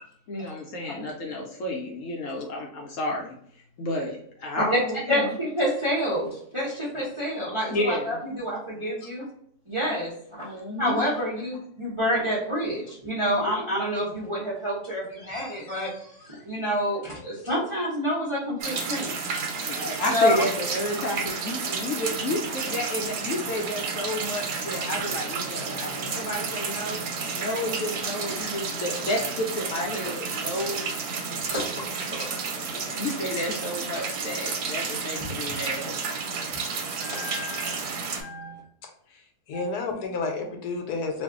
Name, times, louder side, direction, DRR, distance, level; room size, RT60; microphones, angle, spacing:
voice 1, 0.3-5.4 7.7-8.2 10.4-11.0 19.6-27.0 27.3-31.7 32.7-36.2, left 1 dB, 65° left, 0 dB, 0.9 m, -31 dB
voice 2, 5.1-9.2 9.7-10.5 10.8-19.1 20.1-20.4 31.5-31.9 35.2-35.3 37.0-38.6 39.5-39.6, equal, 25° right, -7 dB, 0.7 m, -28 dB
sound 1, 18.6-38.2, right 5 dB, 90° right, 1.2 m, -31 dB
voice 3, 38.8-41.2, left 3 dB, 80° left, 3 dB, 1.2 m, -32 dB
2.5 x 2.3 x 3.6 m, 0.66 s
omnidirectional pair, 1.6 m